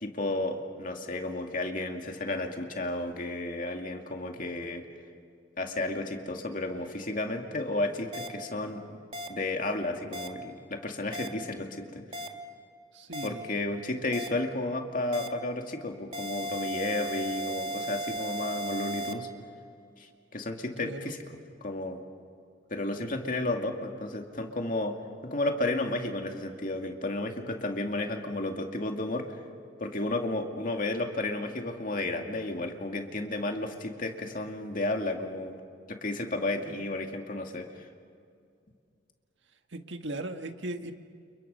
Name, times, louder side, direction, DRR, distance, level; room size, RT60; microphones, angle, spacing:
voice 1, 0.0-4.8 5.6-8.8 9.3-12.0 13.2-19.3 20.3-21.2 21.6-22.0 22.7-25.0 25.2-29.4 29.8-35.6 35.9-37.7, left 2 dB, 45° left, 3 dB, 2.3 m, -32 dB
sound 1, 8.1-8.3 9.1-9.3 10.1-10.3 11.1-11.3 12.1-12.3 13.1-13.3 14.1-14.3 15.1-15.3 16.1-19.1, right 1 dB, 30° right, 1.7 m, -35 dB
voice 2, 12.9-13.5 20.8-21.1 39.7-40.9, right 1 dB, 75° right, 6 dB, 1.6 m, -38 dB
30.0 x 29.5 x 5.5 m, 2.3 s
head